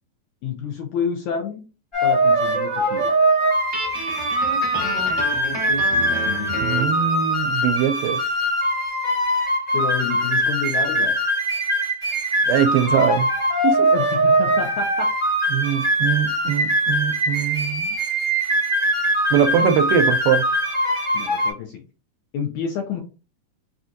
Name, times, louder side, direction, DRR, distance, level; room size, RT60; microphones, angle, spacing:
voice 1, 0.4-1.6 2.0-3.1 9.7-11.1 13.9-15.1 21.1-21.8 22.3-23.0, left 6 dB, 85° left, 1.7 m, -29 dB
sound 1, 1.9-21.5, right 1 dB, 30° left, 0.8 m, -22 dB
Guitar, 3.7-7.0, right 2 dB, 70° right, 0.6 m, -30 dB
voice 2, 6.6-8.2 12.5-13.3 13.6-13.9 15.5-18.0 19.3-20.5, right 8 dB, 90° right, 2.3 m, -22 dB
5.8 x 2.4 x 2.5 m
omnidirectional pair, 4.1 m